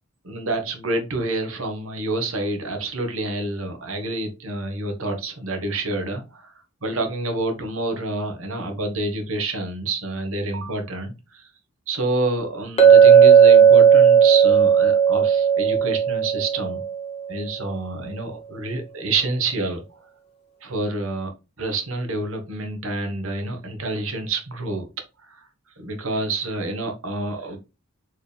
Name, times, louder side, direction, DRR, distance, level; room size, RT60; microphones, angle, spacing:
voice 1, 0.2-6.5 6.8-11.5 11.9-16.8 17.3-19.8 20.6-24.9 25.2-25.5 25.8-27.6, right 2 dB, 70° right, 6 dB, 1.2 m, -28 dB
Chink clink, 12.8-16.9, right 7 dB, 30° left, 1.1 m, -14 dB
4.6 x 3.3 x 3.4 m, 0.28 s
head